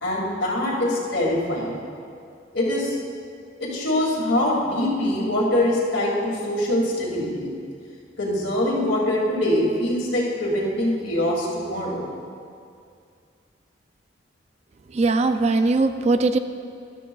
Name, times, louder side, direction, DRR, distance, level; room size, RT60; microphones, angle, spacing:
voice 1, 0.0-1.8 2.5-3.0 3.6-7.5 8.2-12.1, left 1 dB, 75° left, -4 dB, 2.3 m, -23 dB
voice 2, 14.9-16.4, right 3 dB, 35° right, 9 dB, 0.3 m, -20 dB
13.0 x 12.5 x 2.3 m, 2.4 s
head